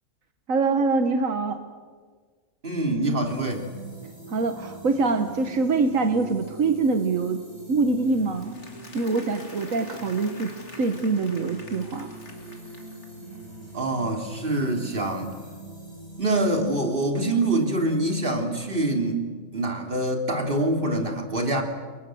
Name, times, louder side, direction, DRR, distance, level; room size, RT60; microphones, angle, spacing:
voice 1, 0.5-1.6 4.3-7.4 7.7-8.6 8.9-10.5 10.8-12.1, right 3 dB, 80° right, 7 dB, 1.7 m, -24 dB
voice 2, 2.6-3.7 13.7-15.3 16.2-19.2 19.5-21.6, right 2 dB, 40° right, 3 dB, 3.5 m, -25 dB
sound 1, 3.2-19.0, right 2 dB, 20° right, 6.4 m, -43 dB
Applause, 8.2-13.3, left 2 dB, 60° left, 3.1 m, -47 dB
30.0 x 23.0 x 7.8 m, 1.5 s
omnidirectional pair, 1.4 m